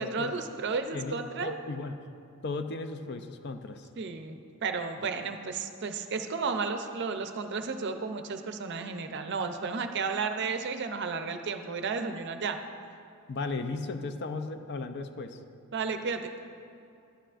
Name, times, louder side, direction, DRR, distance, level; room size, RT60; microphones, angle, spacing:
voice 1, 0.0-1.6 4.0-4.4 4.6-12.6 15.7-16.3, right 4 dB, 55° right, 7 dB, 0.5 m, -33 dB
voice 2, 0.9-2.0 2.4-3.9 13.3-15.4, left 3 dB, 50° left, 8 dB, 0.4 m, -36 dB
11.5 x 10.0 x 2.5 m, 2.5 s
head